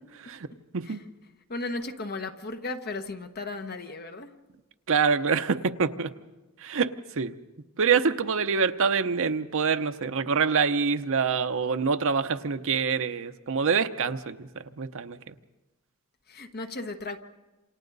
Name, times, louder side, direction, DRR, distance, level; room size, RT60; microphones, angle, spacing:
voice 1, 0.1-0.5 0.7-1.0 4.9-6.1 6.6-7.3 7.8-14.5 14.8-15.3, right 5 dB, 65° right, 9 dB, 0.8 m, -26 dB
voice 2, 1.5-4.3 16.3-17.2, left 2 dB, 45° left, 7 dB, 1.2 m, -35 dB
28.0 x 26.5 x 4.0 m, 1.1 s
head